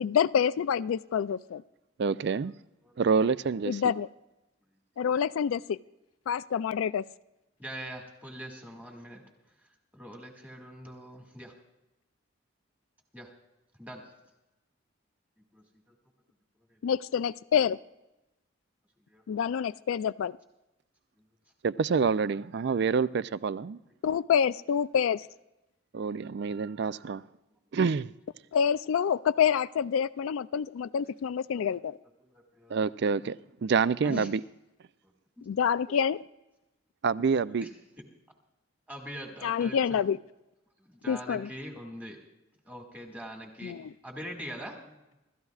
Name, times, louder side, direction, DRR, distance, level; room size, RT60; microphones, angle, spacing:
voice 1, 0.0-1.6 3.7-4.1 5.0-5.8 6.3-7.0 16.8-17.8 19.3-20.4 24.0-25.3 28.5-32.0 34.1-34.3 35.5-36.2 39.4-40.2 41.1-41.5 43.6-43.9, left 7 dB, 85° left, 0.3 m, -27 dB
voice 2, 2.0-2.6 3.0-3.8 21.6-23.8 25.9-27.2 27.7-28.0 32.7-34.4 37.0-37.7, right 5 dB, 55° right, 0.4 m, -27 dB
voice 3, 7.6-9.2 9.9-11.5 13.1-13.3 13.8-14.0 15.5-15.6 19.1-19.4 32.2-32.7 34.0-34.3 35.4-35.5 37.6-37.7 38.9-40.0 40.8-42.2 42.7-43.7 44.0-45.2, equal, 10° right, 2.0 m, -43 dB
27.0 x 13.5 x 2.4 m
head